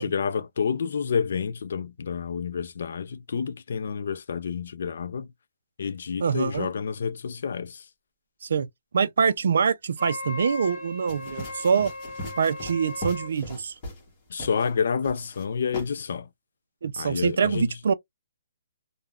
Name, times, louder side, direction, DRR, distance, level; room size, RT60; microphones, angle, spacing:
voice 1, 0.0-5.3 5.8-7.8 14.3-16.3 17.0-17.7, left 6 dB, 60° left, 0.3 m, -29 dB
voice 2, 6.2-6.7 8.4-8.7 8.9-11.9 12.4-13.7 16.8-17.9, right 6 dB, 65° right, 0.3 m, -24 dB
Wind instrument woodwind instrument, 10.0-13.3, left 2 dB, 5° right, 1.3 m, -37 dB
sound 1, 11.1-14.1 14.4-14.7 15.0-15.4 15.7-15.9, left 1 dB, 20° left, 1.1 m, -39 dB
3.4 x 2.1 x 2.3 m
hypercardioid pair, 170°, 0 cm